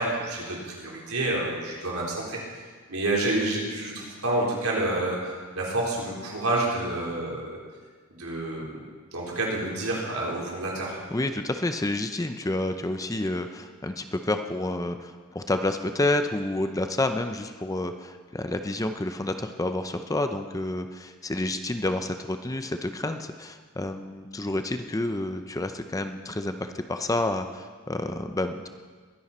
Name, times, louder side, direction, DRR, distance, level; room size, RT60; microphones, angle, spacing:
voice 1, 0.0-2.6 2.9-7.6 8.1-8.8 9.1-11.0, right 2 dB, 75° right, -4 dB, 4.1 m, -29 dB
voice 2, 11.1-28.7, left 2 dB, 15° left, 7 dB, 0.6 m, -29 dB
22.0 x 11.0 x 4.3 m, 1.5 s
head